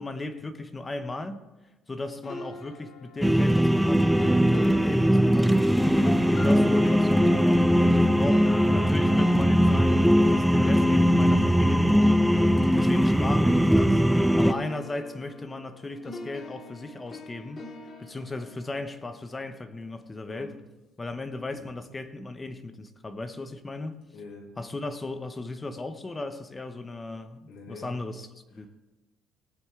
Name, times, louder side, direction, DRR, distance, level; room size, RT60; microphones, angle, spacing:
voice 1, 0.0-1.4 1.9-5.5 5.9-12.1 12.7-17.6 18.0-20.6 21.0-23.9 24.6-28.7, left 2 dB, 15° left, 0.8 m, -36 dB
sound 1, 2.2-14.2 14.5-19.7, left 1 dB, 35° left, 1.8 m, -41 dB
sound 2, 3.2-14.5, equal, ahead, 0.3 m, -20 dB
voice 2, 24.1-24.5 27.5-28.0, left 4 dB, 70° left, 3.6 m, -43 dB
18.5 x 8.9 x 3.7 m
cardioid pair, 160°, 0 cm